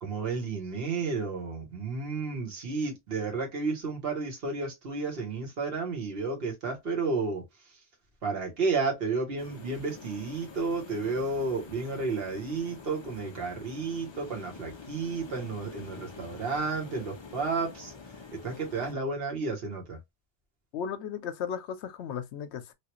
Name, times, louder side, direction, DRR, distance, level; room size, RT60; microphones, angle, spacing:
voice 1, 0.0-7.8 8.2-20.0, right 4 dB, 55° right, 1.3 m, -32 dB
sound 1, 9.4-18.9, left 4 dB, 45° left, 0.3 m, -47 dB
voice 2, 20.7-22.7, left 7 dB, 75° left, 0.8 m, -35 dB
3.2 x 2.4 x 2.9 m
omnidirectional pair, 1.2 m